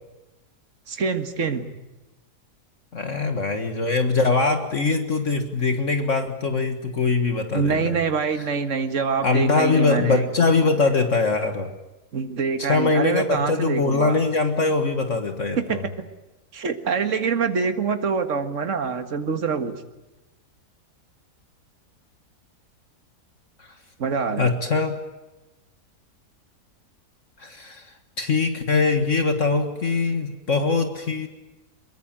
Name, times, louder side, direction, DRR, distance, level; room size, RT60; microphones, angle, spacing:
voice 1, 0.9-1.7 7.5-10.2 12.1-14.2 15.5-15.9 16.5-19.8 24.0-24.5, right 5 dB, 50° right, 8 dB, 2.0 m, -25 dB
voice 2, 2.9-8.0 9.2-11.7 12.6-15.8 23.6-23.7 24.4-25.0 27.4-31.3, left 3 dB, 50° left, 7 dB, 2.0 m, -22 dB
23.0 x 23.0 x 9.0 m, 1.0 s
omnidirectional pair, 1.7 m